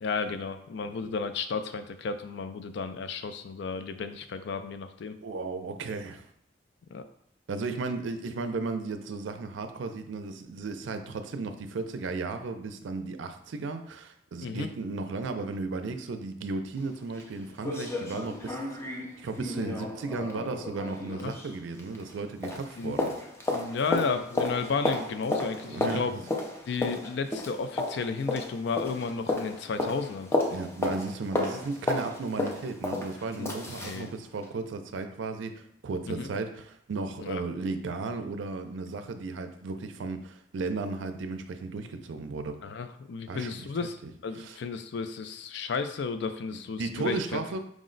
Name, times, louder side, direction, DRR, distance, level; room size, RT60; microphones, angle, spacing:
voice 1, 0.0-5.2 6.9-7.1 14.4-14.7 21.1-21.3 22.8-23.0 23.5-26.1 26.7-30.3 33.4-34.1 36.1-36.3 37.2-37.4 42.6-44.0 44.2-47.4, left 5 dB, 65° left, 9 dB, 0.4 m, -33 dB
voice 2, 5.2-6.3 7.5-23.1 25.6-26.2 30.5-42.6 43.3-43.7 44.0-44.1 44.4-44.6 46.8-47.6, right 3 dB, 85° right, 7 dB, 0.4 m, -35 dB
sound 1, 16.8-16.9 17.2-17.3 17.6-22.2 22.4-34.0 34.4-34.5, left 2 dB, 15° left, 0.5 m, -33 dB
4.9 x 2.1 x 3.8 m, 0.71 s
head